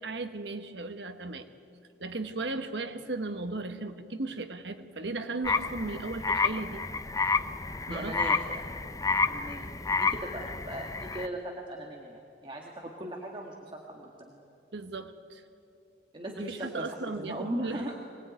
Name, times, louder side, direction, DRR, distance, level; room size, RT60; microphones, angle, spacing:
voice 1, 0.0-1.4 2.0-6.9 7.9-8.2 14.7-15.4 16.4-17.8, right 3 dB, 75° right, 8 dB, 1.4 m, -36 dB
sound 1, 5.4-11.3, left 4 dB, 20° left, 0.5 m, -30 dB
voice 2, 7.9-8.6 9.2-14.4 16.1-17.9, right 1 dB, 30° right, 0 dB, 1.8 m, -39 dB
24.0 x 19.0 x 9.5 m, 2.5 s
head